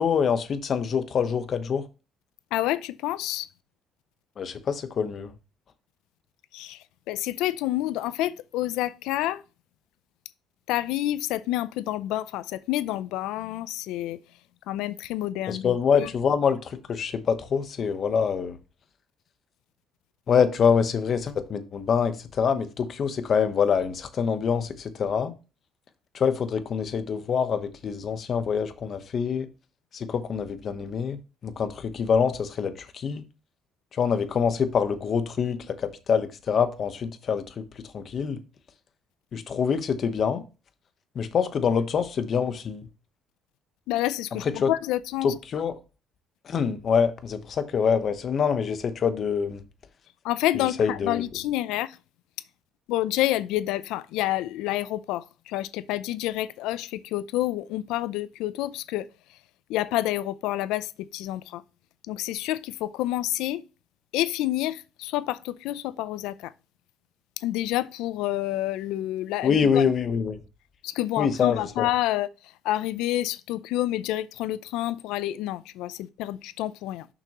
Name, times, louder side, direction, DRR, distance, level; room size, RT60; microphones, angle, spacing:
voice 1, 0.0-1.8 4.4-5.3 15.5-18.6 20.3-25.3 26.1-29.5 29.9-33.2 33.9-38.4 39.3-40.4 41.1-42.9 44.4-44.7 45.2-45.8 46.4-49.6 50.6-51.2 69.4-70.4 71.2-71.9, left 6 dB, 50° left, 1.0 m, -25 dB
voice 2, 2.5-3.5 6.5-9.4 10.7-14.2 14.7-16.1 43.9-45.4 50.2-52.0 52.9-59.1 59.7-61.6 62.1-63.6 64.1-66.5 67.4-69.8 70.8-72.3 72.6-77.1, left 15 dB, 85° left, 0.5 m, -28 dB
6.8 x 5.9 x 3.0 m
cardioid pair, 100°, 0 cm